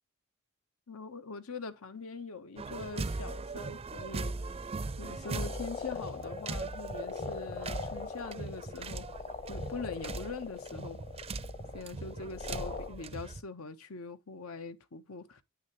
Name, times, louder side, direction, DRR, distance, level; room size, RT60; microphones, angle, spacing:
voice 1, 0.9-4.4 5.0-9.1 9.5-11.0 11.7-15.4, left 4 dB, 85° left, 1.0 m, -43 dB
sound 1, 2.6-13.4, right 3 dB, 30° right, 0.4 m, -40 dB
sound 2, 5.2-12.9, left 5 dB, 35° left, 1.0 m, -42 dB
9.4 x 6.2 x 3.0 m
head